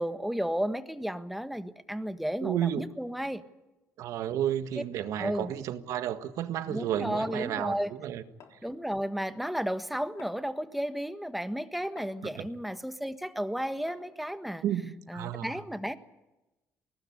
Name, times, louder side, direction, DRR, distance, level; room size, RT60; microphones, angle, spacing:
voice 1, 0.0-3.4 4.7-4.8 5.1-5.5 6.7-7.9 8.6-14.6 15.1-16.0, equal, ahead, 10 dB, 1.5 m, -33 dB
voice 2, 2.4-2.9 4.0-8.2 12.4-12.5 14.6-15.6, right 10 dB, 85° right, 10 dB, 1.7 m, -32 dB
sound 1, 8.4-8.7 10.2-10.6 12.0-12.3 13.9-14.3, left 7 dB, 70° left, 3.7 m, -53 dB
22.0 x 18.5 x 9.8 m, 1.0 s
cardioid pair, 110°, 5 cm